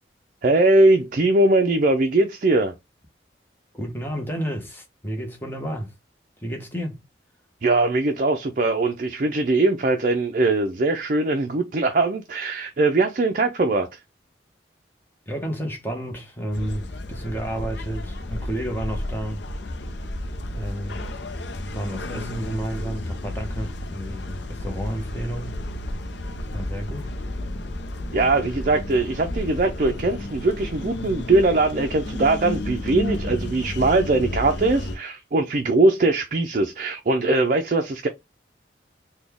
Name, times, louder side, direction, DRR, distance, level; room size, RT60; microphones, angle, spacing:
voice 1, 0.4-2.7 7.6-14.0 28.1-38.1, right 2 dB, 45° right, 0.4 m, -21 dB
voice 2, 3.7-5.9 6.4-7.0 15.3-19.4 20.5-21.1 21.7-25.6 26.5-27.1, equal, 10° left, 1.0 m, -31 dB
sound 1, 16.5-35.0, left 1 dB, 75° left, 0.6 m, -32 dB
4.0 x 2.3 x 3.4 m
head